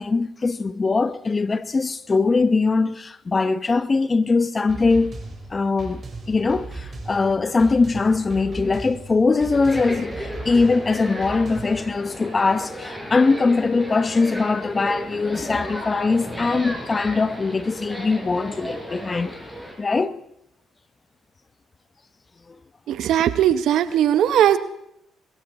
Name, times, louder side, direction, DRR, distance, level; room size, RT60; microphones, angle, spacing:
voice 1, 0.0-5.2 5.5-19.4 19.8-20.2 22.5-22.6, left 4 dB, 30° left, 0.9 m, -21 dB
sound 1, 4.7-11.9, right 3 dB, 40° right, 3.7 m, -37 dB
sound 2, 9.5-19.7, equal, 5° left, 4.8 m, -34 dB
voice 2, 22.9-24.6, right 10 dB, 70° right, 0.8 m, -18 dB
22.0 x 13.5 x 4.2 m
supercardioid pair, 70°, 0 cm